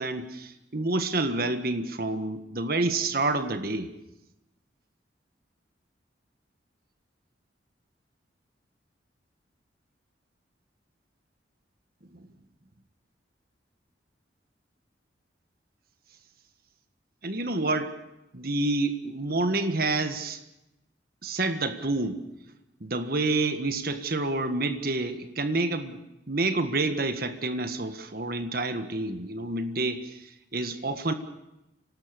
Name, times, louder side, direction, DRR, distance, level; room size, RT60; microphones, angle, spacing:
voice 1, 0.0-3.9 12.1-12.3 17.2-17.9 18.3-20.4 21.2-22.2 22.8-26.0 26.3-31.1, right 2 dB, 50° right, 8 dB, 1.6 m, -28 dB
26.0 x 18.5 x 6.7 m, 0.91 s
head